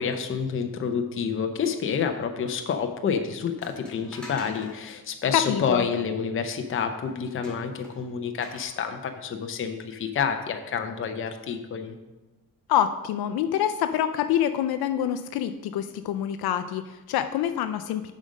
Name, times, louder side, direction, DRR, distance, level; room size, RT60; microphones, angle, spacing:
voice 1, 0.0-11.9, left 6 dB, 35° left, 5 dB, 0.7 m, -28 dB
sound 1, 3.6-4.8 7.4-8.6, left 1 dB, ahead, 2.1 m, -45 dB
voice 2, 5.3-5.8 12.7-18.1, left 10 dB, 70° left, 10 dB, 0.5 m, -26 dB
7.6 x 5.1 x 6.3 m, 1.1 s
cardioid pair, 130°, 38 cm